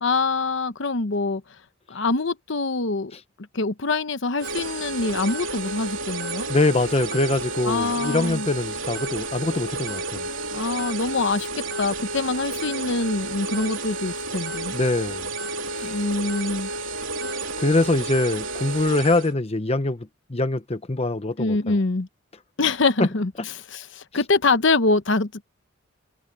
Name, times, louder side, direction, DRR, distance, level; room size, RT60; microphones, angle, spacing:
voice 1, 0.0-1.4 1.9-3.1 3.5-6.5 7.6-8.5 10.5-14.7 15.8-16.7 21.4-22.1 22.6-25.4, left 3 dB, 65° left, 0.9 m, -24 dB
sound 1, 4.4-19.3, right 2 dB, 70° right, 3.2 m, -31 dB
voice 2, 6.5-10.3 14.7-15.3 15.7-15.9 17.6-21.8, left 2 dB, 30° left, 0.9 m, -24 dB
head